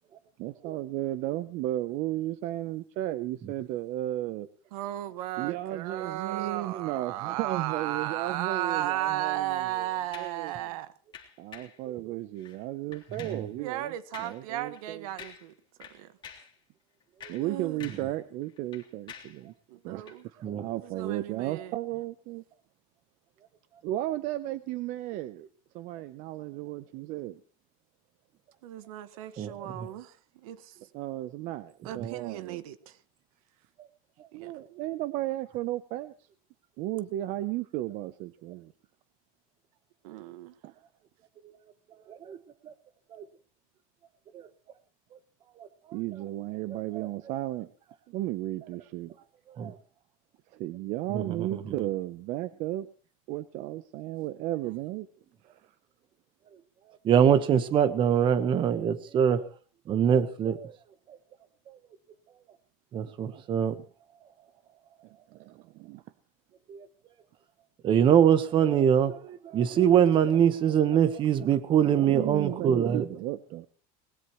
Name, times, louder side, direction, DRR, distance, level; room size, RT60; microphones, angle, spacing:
voice 1, 0.4-4.5 5.4-10.5 11.4-15.1 17.3-19.5 19.8-20.0 20.6-22.4 23.8-25.5 25.7-27.4 30.9-32.6 34.3-36.1 36.8-38.7 40.6-40.7 45.9-47.7 48.1-49.1 50.5-52.9 53.3-55.1 65.3-66.0 71.8-73.7, right 15 dB, 45° right, 0.8 m, -34 dB
voice 2, 4.7-10.9 13.6-15.5 15.8-16.1 17.4-17.9 19.7-20.2 20.7-21.7 28.6-30.2 30.4-30.7 31.8-33.0 34.3-34.5 40.0-40.5, right 13 dB, 75° right, 1.5 m, -35 dB
sound 1, 10.1-10.4 11.1-11.8 12.4-12.6 12.9-13.5 14.1-14.4 14.7-14.9 15.2-15.5 15.8-16.6 17.0-18.2 18.4-19.4 20.0-20.2, left 8 dB, 25° left, 3.6 m, -48 dB
voice 3, 13.1-13.5 17.2-17.3 20.4-20.6 29.4-29.9 42.1-42.4 42.6-42.7 43.1-43.2 44.3-44.5 45.6-45.7 46.7-47.1 49.6-49.8 51.1-51.7 57.0-59.5 59.9-60.7 61.1-61.2 61.7-61.8 62.9-63.8 66.7-66.9 67.8-73.1, right 9 dB, 25° right, 1.2 m, -24 dB
21.5 x 20.5 x 3.1 m
supercardioid pair, 165°, 18 cm